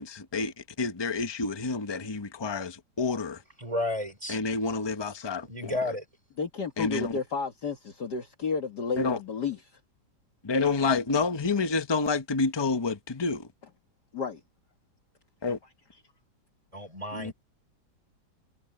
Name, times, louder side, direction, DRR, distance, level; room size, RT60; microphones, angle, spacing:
voice 1, 0.0-3.4 4.3-5.8 6.8-7.2 9.0-9.2 10.4-13.5 15.4-15.6 17.1-17.3, left 4 dB, 15° left, 0.9 m, -29 dB
voice 2, 3.6-4.4 5.4-6.0 16.7-17.3, left 1 dB, 15° right, 4.0 m, -32 dB
voice 3, 6.4-9.8 14.1-14.4, left 5 dB, 55° left, 2.4 m, -32 dB
omnidirectional pair, 2.1 m